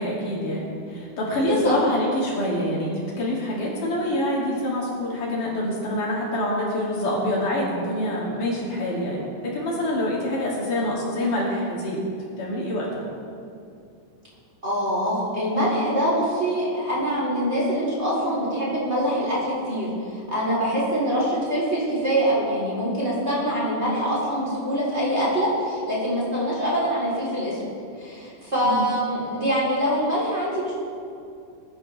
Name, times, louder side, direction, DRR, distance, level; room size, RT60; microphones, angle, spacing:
voice 1, 0.0-12.0 12.4-13.1 28.6-28.9, left 1 dB, 70° left, -5 dB, 4.2 m, -26 dB
voice 2, 14.6-27.6 28.0-30.7, equal, 20° right, -7 dB, 3.7 m, -24 dB
21.0 x 11.0 x 3.4 m, 2.5 s
omnidirectional pair, 3.8 m